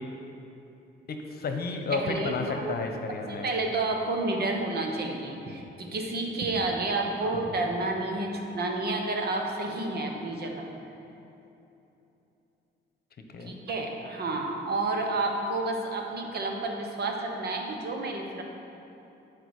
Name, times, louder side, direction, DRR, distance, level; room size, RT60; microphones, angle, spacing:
voice 1, 1.1-3.5 13.3-13.6, left 4 dB, 50° left, 4 dB, 1.0 m, -32 dB
voice 2, 1.9-2.8 3.1-10.7 13.5-18.4, right 2 dB, 55° right, 2 dB, 1.2 m, -30 dB
12.0 x 5.0 x 4.9 m, 3.0 s
cardioid pair, 90°, 20 cm